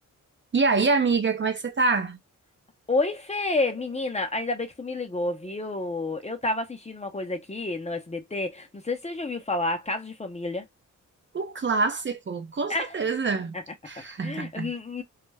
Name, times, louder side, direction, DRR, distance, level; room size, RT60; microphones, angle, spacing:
voice 1, 0.5-2.2 11.3-13.5 13.8-14.7, right 4 dB, 35° right, 0.5 m, -25 dB
voice 2, 2.9-10.7 12.7-13.0 14.2-15.0, left 2 dB, 20° left, 0.6 m, -29 dB
2.3 x 2.1 x 3.2 m
cardioid pair, 80°, 32 cm